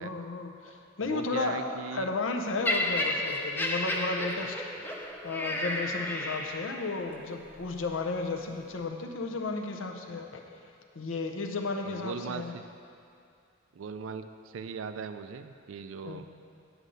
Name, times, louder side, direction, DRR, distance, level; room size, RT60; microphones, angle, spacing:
voice 1, 0.0-4.6 5.2-10.4 10.9-12.5 16.1-16.2, left 3 dB, 80° left, 3 dB, 0.7 m, -33 dB
voice 2, 1.0-2.1 2.9-3.0 4.4-4.5 11.9-12.6 13.7-16.3, right 5 dB, 85° right, 10 dB, 0.4 m, -39 dB
Laughter, 2.6-6.9 7.7-7.9, left 1 dB, 10° left, 0.4 m, -32 dB
8.1 x 6.4 x 3.9 m, 2.5 s
head